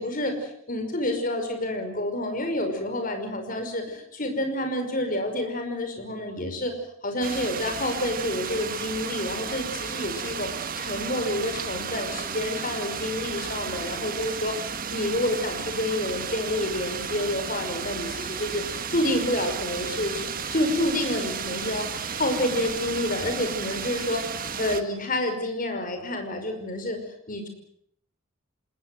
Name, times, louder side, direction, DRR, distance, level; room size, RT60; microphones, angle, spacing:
voice 1, 0.0-6.7 7.0-10.5 10.8-20.2 20.5-24.2 24.6-27.0 27.3-27.5, left 1 dB, 45° left, 5 dB, 5.6 m, -28 dB
sound 1, 7.2-24.8, right 6 dB, 45° right, 1.6 m, -33 dB
27.5 x 20.0 x 7.9 m, 0.67 s
head